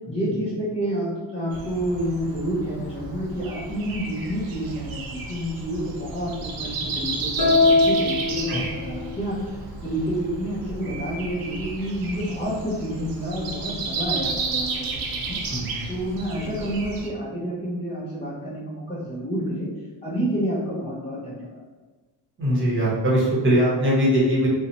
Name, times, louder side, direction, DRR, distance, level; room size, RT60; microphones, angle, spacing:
voice 1, 0.1-15.4 15.9-19.7 20.0-21.6, equal, 15° left, -10 dB, 0.5 m, -29 dB
Breathing, 1.5-17.1, right 4 dB, 50° right, 0.5 m, -33 dB
sound 1, 7.4-9.2, left 3 dB, 45° left, 1.0 m, -21 dB
voice 2, 22.4-24.5, equal, 25° right, -6 dB, 0.9 m, -21 dB
2.6 x 2.0 x 2.8 m, 1.3 s
cardioid pair, 115°, 46 cm